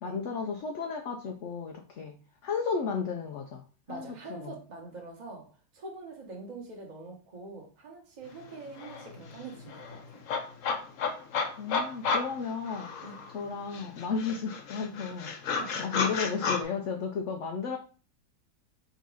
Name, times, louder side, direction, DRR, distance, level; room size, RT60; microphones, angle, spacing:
voice 1, 0.0-3.6 3.9-4.6 11.6-13.1 13.3-17.8, left 5 dB, 80° left, 3 dB, 0.6 m, -34 dB
voice 2, 3.9-5.5 5.7-10.2 13.0-13.2 15.6-15.9, right 3 dB, 30° right, 0 dB, 1.0 m, -44 dB
sound 1, 8.4-8.5 8.8-13.4 13.7-16.6, left 5 dB, 60° left, 0.9 m, -32 dB
3.9 x 2.7 x 4.8 m, 0.38 s
omnidirectional pair, 1.9 m